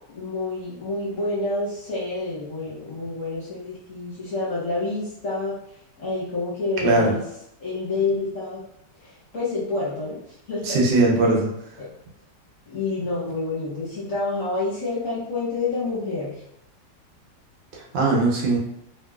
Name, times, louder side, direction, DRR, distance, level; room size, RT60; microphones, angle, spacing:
voice 1, 0.1-5.6 6.0-7.2 7.6-8.6 9.0-10.2 10.5-10.8 11.8-11.9 12.7-16.4, left 3 dB, 55° left, -8 dB, 1.0 m, -28 dB
voice 2, 10.6-11.5 17.7-18.6, right 2 dB, 75° right, -2 dB, 1.4 m, -20 dB
2.9 x 2.9 x 2.3 m, 0.78 s
omnidirectional pair, 2.1 m